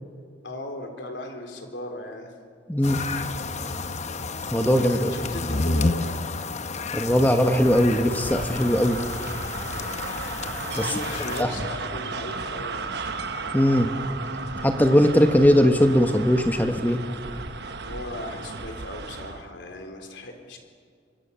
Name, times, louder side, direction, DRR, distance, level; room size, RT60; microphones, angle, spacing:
voice 1, 0.4-2.3 4.5-6.2 9.6-9.9 10.7-13.0 17.3-17.5 17.8-20.6, left 1 dB, 70° left, 4 dB, 3.9 m, -37 dB
voice 2, 2.7-3.0 4.5-5.1 6.9-9.0 10.8-10.9 11.4-11.5 13.5-13.9 14.6-17.0, equal, 10° left, 5 dB, 1.2 m, -20 dB
sound 1, 2.8-11.4, left 3 dB, 40° left, 0.9 m, -30 dB
sound 2, 7.4-19.5, right 4 dB, 60° right, 1.2 m, -35 dB
25.0 x 24.5 x 7.0 m, 2.1 s
head